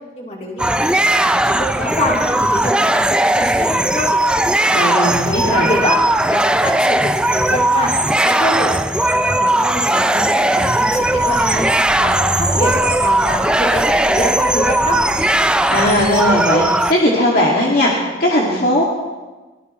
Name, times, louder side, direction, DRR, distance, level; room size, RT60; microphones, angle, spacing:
voice 1, 0.1-0.9 1.3-2.2 2.5-4.1 4.9-5.9 6.3-11.7 12.0-12.7 13.0-15.0, left 1 dB, 40° left, -3 dB, 3.5 m, -25 dB
sound 1, 0.6-16.9, right 1 dB, 5° right, 0.4 m, -17 dB
voice 2, 4.7-5.7 15.7-18.8, left 1 dB, 55° left, -4 dB, 2.3 m, -17 dB
sound 2, 10.8-16.2, right 1 dB, 55° right, 2.9 m, -35 dB
23.5 x 18.5 x 3.2 m, 1.2 s
head